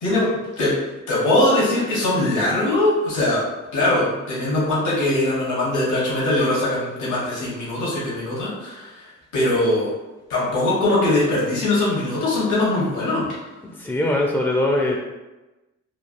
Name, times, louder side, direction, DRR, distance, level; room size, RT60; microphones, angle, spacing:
voice 1, 1.1-3.4 3.7-9.1 9.3-9.9 10.3-13.4, left 2 dB, 80° left, -6 dB, 1.0 m, -21 dB
voice 2, 13.6-15.0, left 1 dB, 10° left, -1 dB, 0.3 m, -21 dB
3.2 x 2.2 x 2.4 m, 1.1 s
cardioid pair, 70°, 30 cm